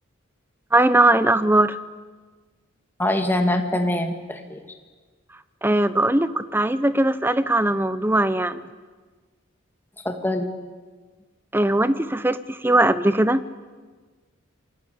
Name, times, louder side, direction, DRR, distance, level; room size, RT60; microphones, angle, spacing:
voice 1, 0.7-1.8 5.6-8.7 11.5-13.4, right 1 dB, 10° right, 13 dB, 0.8 m, -20 dB
voice 2, 3.0-4.6 10.0-10.5, left 1 dB, 10° left, 5 dB, 2.1 m, -23 dB
28.5 x 22.0 x 8.5 m, 1.4 s
head